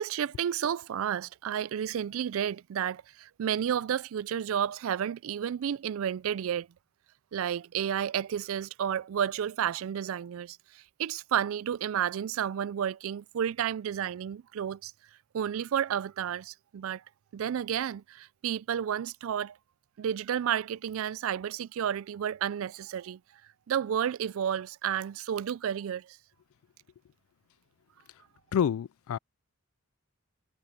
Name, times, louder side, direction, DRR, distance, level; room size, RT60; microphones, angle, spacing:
voice 1, 0.0-6.7 7.3-14.9 15.3-17.0 17.3-19.6 20.0-23.2 23.7-26.2, right 9 dB, 70° right, 0.3 m, -31 dB
voice 2, 28.5-29.2, left 8 dB, 75° left, 0.3 m, -27 dB
head